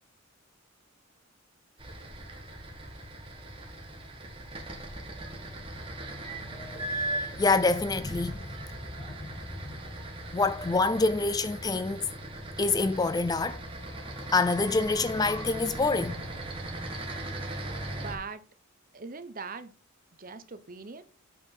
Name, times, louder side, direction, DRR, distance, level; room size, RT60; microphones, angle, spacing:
sound 1, 1.8-18.1, right 1 dB, 25° right, 1.7 m, -39 dB
voice 1, 6.5-8.4 9.1-9.8 10.3-12.1 12.6-13.6 14.3-16.2, left 3 dB, 20° left, 0.4 m, -27 dB
voice 2, 18.0-18.4 18.9-19.7 20.2-21.0, right 4 dB, 40° right, 0.8 m, -40 dB
8.3 x 4.7 x 5.5 m
head